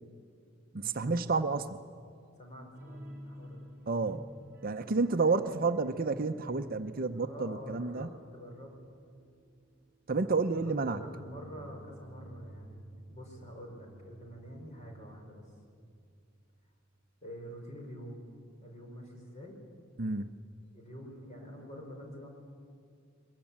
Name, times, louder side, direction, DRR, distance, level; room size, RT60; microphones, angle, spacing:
voice 1, 0.7-1.8 3.9-4.3 4.6-8.1 10.1-11.0 20.0-20.3, right 4 dB, 45° right, 9 dB, 0.7 m, -30 dB
voice 2, 1.3-1.7 2.4-3.7 7.2-8.7 10.5-15.5 17.2-18.3 18.6-19.6 20.7-22.3, equal, 35° left, 1 dB, 5.3 m, -47 dB
sound 1, 2.7-16.0 16.3-16.5 16.9-17.0, right 1 dB, 10° right, 4.2 m, -52 dB
22.5 x 22.0 x 8.7 m, 2.3 s
head